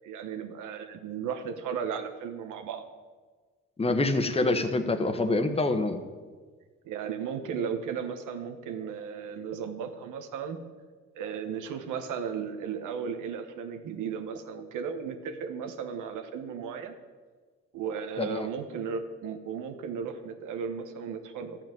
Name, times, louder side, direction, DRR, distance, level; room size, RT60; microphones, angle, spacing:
voice 1, 0.0-2.9 6.8-10.6 11.1-16.9 17.7-21.6, right 7 dB, 85° right, 8 dB, 1.2 m, -35 dB
voice 2, 3.8-6.0 18.2-18.5, left 2 dB, 20° left, 8 dB, 1.2 m, -26 dB
12.5 x 5.9 x 8.9 m, 1.4 s
cardioid pair, 90°, 30 cm